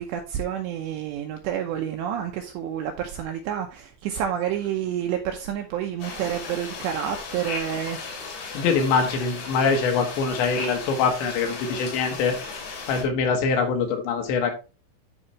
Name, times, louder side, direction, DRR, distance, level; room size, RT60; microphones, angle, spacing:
voice 1, 0.0-8.0, right 9 dB, 80° right, 2.6 m, -29 dB
sound 1, 6.0-13.0, left 4 dB, 85° left, 5.5 m, -36 dB
voice 2, 8.5-12.4 12.9-14.5, left 5 dB, 70° left, 3.2 m, -23 dB
12.5 x 4.9 x 3.2 m
omnidirectional pair, 5.9 m